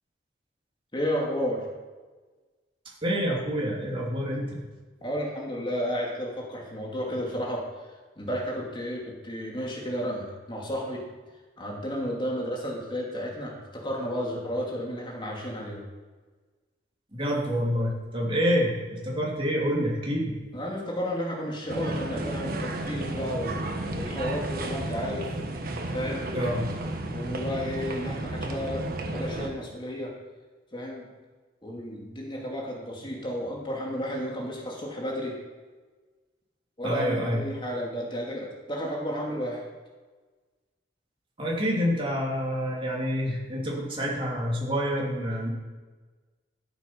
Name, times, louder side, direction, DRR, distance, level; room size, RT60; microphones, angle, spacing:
voice 1, 0.9-1.6 5.0-7.6 8.2-11.0 11.6-15.8 20.5-23.6 23.9-25.4 25.9-26.3 27.1-28.9 29.1-30.1 30.7-31.0 31.6-35.3 36.8-39.6, equal, 30° left, -2 dB, 2.6 m, -32 dB
voice 2, 3.0-4.6 17.1-20.3 26.3-26.7 36.8-37.4 41.4-45.5, equal, 30° right, -3 dB, 2.8 m, -27 dB
sound 1, 21.7-29.5, right 1 dB, 55° right, 1.3 m, -32 dB
13.0 x 7.3 x 5.8 m, 1.3 s
head